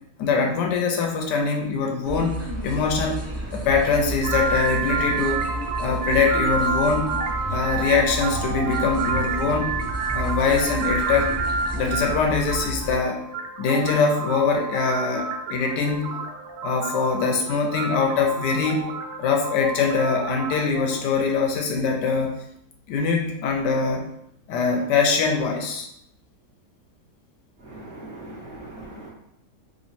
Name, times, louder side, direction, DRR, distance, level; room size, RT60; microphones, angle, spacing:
voice 1, 0.2-3.2 3.5-5.4 5.8-7.1 7.5-9.7 10.1-11.3 11.7-13.2 13.6-16.2 16.6-18.9 19.2-22.3 22.9-24.0 24.5-25.9, left 5 dB, 90° left, 2 dB, 1.2 m, -23 dB
sound 1, 2.0-12.9, equal, 15° right, 0.5 m, -31 dB
sound 2, 4.2-21.0, right 4 dB, 75° right, 1.2 m, -29 dB
voice 2, 27.6-29.1, right 2 dB, 45° right, -9 dB, 1.1 m, -40 dB
3.1 x 3.0 x 4.1 m, 0.77 s
omnidirectional pair, 1.8 m